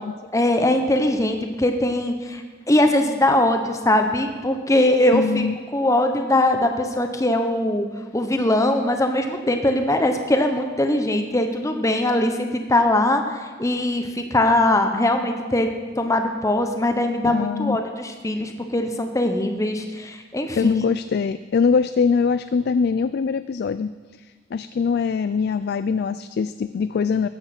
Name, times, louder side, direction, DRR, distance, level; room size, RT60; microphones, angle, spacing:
voice 1, 0.3-2.4 2.7-5.4 5.7-7.8 8.1-15.7 16.0-20.7, left 1 dB, 15° left, 5 dB, 0.9 m, -21 dB
voice 2, 5.1-5.6 17.2-17.8 20.6-23.9 24.5-27.3, left 5 dB, 55° left, 13 dB, 0.3 m, -22 dB
14.0 x 8.8 x 5.9 m, 1.4 s
head